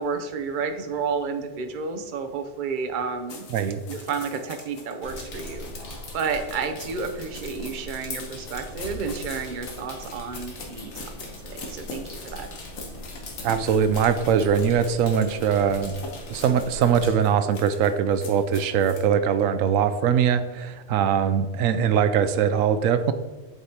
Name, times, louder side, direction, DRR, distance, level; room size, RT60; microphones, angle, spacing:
voice 1, 0.0-3.5 3.9-5.7 6.1-10.9 11.4-12.5, right 5 dB, 45° right, 5 dB, 0.7 m, -31 dB
sound 1, 3.3-19.1, left 3 dB, 90° left, 1.4 m, -43 dB
voice 2, 3.5-3.8 13.4-16.0 16.3-23.1, right 7 dB, 80° right, 11 dB, 1.0 m, -22 dB
sound 2, 5.0-17.1, left 1 dB, 60° left, 1.5 m, -40 dB
7.9 x 5.0 x 2.8 m, 1.2 s
omnidirectional pair, 1.4 m